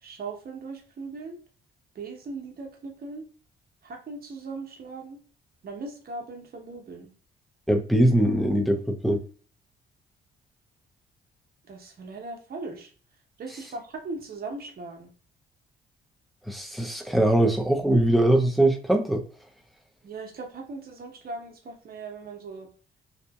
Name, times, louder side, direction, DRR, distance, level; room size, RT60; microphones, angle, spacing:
voice 1, 0.0-1.4 1.9-3.3 3.8-5.2 5.6-7.1 11.6-12.9 13.4-15.1 20.0-22.7, right 3 dB, 50° right, 2 dB, 0.9 m, -39 dB
voice 2, 7.7-9.2 16.5-19.2, right 1 dB, ahead, 2 dB, 0.5 m, -22 dB
2.8 x 2.5 x 2.2 m, 0.40 s
cardioid pair, 90°, 20 cm